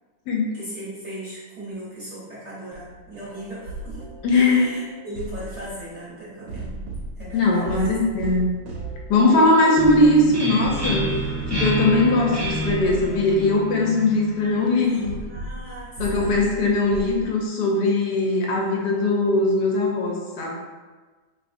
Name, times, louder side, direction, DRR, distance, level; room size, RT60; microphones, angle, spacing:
voice 1, 0.5-6.9 7.1-7.9 14.4-16.3, right 1 dB, 50° right, -8 dB, 1.0 m, -37 dB
sound 1, 2.7-6.1 6.4-13.6 14.3-14.4 15.0-17.2, right 1 dB, 80° right, 1.3 m, -36 dB
voice 2, 4.2-4.7 7.3-8.5 9.1-11.1 11.5-15.1 16.0-20.5, left 2 dB, 75° left, -2 dB, 1.2 m, -20 dB
sound 2, 9.8-15.3, right 2 dB, 25° right, 0.3 m, -29 dB
3.6 x 3.2 x 2.5 m, 1.3 s
omnidirectional pair, 2.0 m